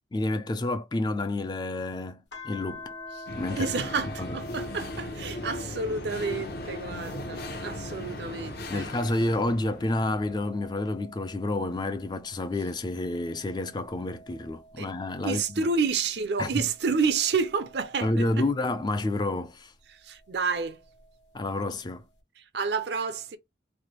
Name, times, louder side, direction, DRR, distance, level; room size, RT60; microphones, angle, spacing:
voice 1, 0.1-2.9 3.4-3.7 4.2-4.4 8.7-15.7 16.4-16.6 18.0-19.7 21.3-22.0, left 2 dB, 25° left, 0.4 m, -29 dB
sound 1, 2.3-9.0 9.5-12.4 13.0-15.8 16.5-19.0 20.3-21.4, equal, 75° left, 1.3 m, -48 dB
voice 2, 3.1-8.9 14.8-14.9 15.2-18.4 19.9-20.8 22.4-23.4, right 5 dB, 65° right, 0.5 m, -30 dB
sound 2, 3.3-10.4, left 2 dB, 55° left, 0.7 m, -38 dB
3.3 x 2.2 x 2.9 m
head